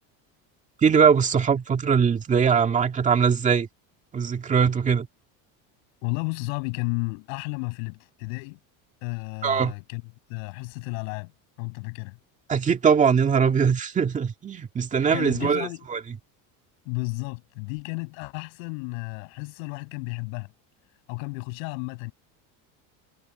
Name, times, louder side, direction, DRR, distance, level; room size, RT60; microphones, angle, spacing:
voice 1, 0.8-3.7 4.1-5.1 9.4-9.7 12.5-16.0, right 6 dB, 20° right, 2.0 m, -21 dB
voice 2, 6.0-8.6 9.0-10.0 10.3-11.3 11.6-12.2 15.1-15.9 16.9-20.5 21.1-22.1, left 35 dB, 85° left, 6.9 m, -32 dB
cardioid pair, 170°, 38 cm